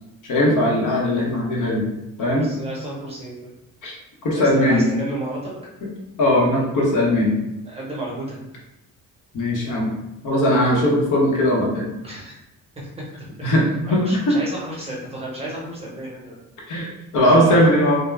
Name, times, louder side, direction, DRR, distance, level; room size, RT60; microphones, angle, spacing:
voice 1, 0.2-1.9 2.2-2.5 3.8-3.9 4.2-4.9 6.2-7.4 9.3-9.9 10.2-11.9 13.4-13.6 13.9-14.4 16.7-16.9 17.1-18.0, left 1 dB, 65° left, -3 dB, 0.8 m, -19 dB
voice 2, 2.3-3.5 4.3-5.5 7.6-8.4 12.0-12.3 12.8-12.9 13.2-13.5 13.9-16.4 17.2-17.8, right 1 dB, 20° right, -5 dB, 0.7 m, -32 dB
2.3 x 2.1 x 3.1 m, 0.91 s
cardioid pair, 145°, 33 cm